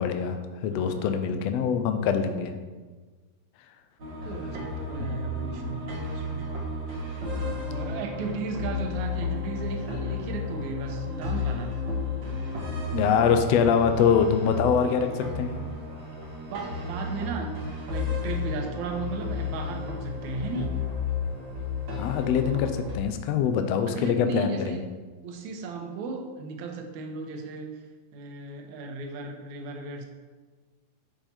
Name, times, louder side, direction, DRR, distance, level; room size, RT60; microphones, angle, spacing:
voice 1, 0.0-2.5 5.0-5.1 12.9-15.6 21.9-24.8, left 7 dB, 85° left, 7 dB, 1.4 m, -24 dB
voice 2, 0.7-1.3 4.0-6.5 7.0-7.1 7.7-11.8 16.4-17.6 17.9-20.8 23.9-24.8 25.2-27.9 28.1-30.1, right 4 dB, 70° right, 3 dB, 2.2 m, -35 dB
sound 1, 4.0-23.0, left 3 dB, 50° right, 1.5 m, -32 dB
10.5 x 4.9 x 4.3 m, 1.4 s
omnidirectional pair, 3.7 m